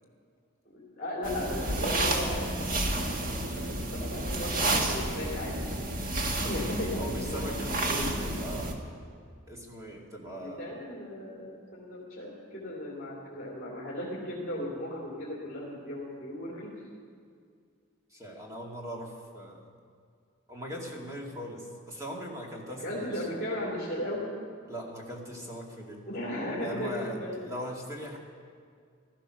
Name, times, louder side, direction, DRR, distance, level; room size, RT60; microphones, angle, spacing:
voice 1, 0.6-2.7 3.3-5.8 6.4-7.6 8.0-8.6 10.3-16.7 22.8-24.3 26.1-27.4, left 1 dB, 40° left, -7 dB, 3.4 m, -36 dB
sound 1, 1.2-8.7, right 2 dB, 40° right, 1.5 m, -31 dB
voice 2, 7.0-8.9 9.5-10.7 18.1-19.7 20.5-23.3 24.7-26.0 26.6-28.2, equal, 15° right, -1 dB, 2.1 m, -40 dB
16.0 x 13.5 x 6.3 m, 2.1 s
head